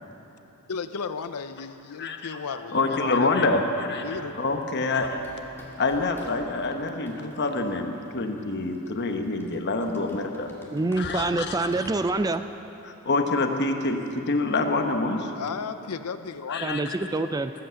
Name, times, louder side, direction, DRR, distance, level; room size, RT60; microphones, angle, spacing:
voice 1, 0.7-3.3 3.9-4.4 15.4-16.9, left 5 dB, 90° left, 10 dB, 0.6 m, -34 dB
voice 2, 2.0-4.1 4.4-5.2 5.8-10.5 11.0-11.7 12.8-15.3 16.5-17.0, left 3 dB, 50° left, 4 dB, 1.1 m, -26 dB
sound 1, 4.0-12.1, equal, 10° left, 2.1 m, -48 dB
voice 3, 10.7-12.4 16.6-17.5, right 2 dB, 15° right, 10 dB, 0.4 m, -26 dB
19.0 x 8.2 x 7.6 m, 3.0 s
head